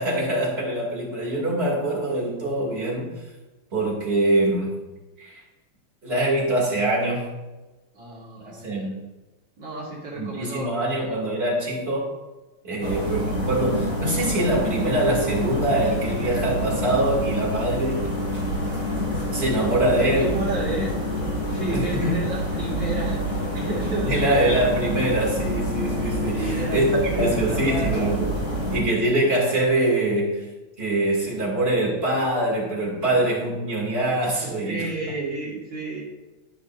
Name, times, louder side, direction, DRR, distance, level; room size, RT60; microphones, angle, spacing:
voice 1, 0.0-3.2 3.7-4.8 5.2-5.4 6.0-7.4 8.4-8.9 10.2-12.1 12.6-18.1 19.3-20.4 21.7-22.3 24.0-28.4 28.7-30.5 30.8-34.9, right 1 dB, 30° right, -5 dB, 2.7 m, -24 dB
voice 2, 7.9-8.9 9.6-11.1 12.7-12.9 20.0-20.9 21.4-24.3 26.3-28.0 34.6-36.0, right 2 dB, 60° right, -5 dB, 2.6 m, -32 dB
sound 1, 12.8-28.8, equal, 40° left, 2.9 m, -27 dB
14.5 x 5.5 x 2.6 m, 1.1 s
omnidirectional pair, 2.4 m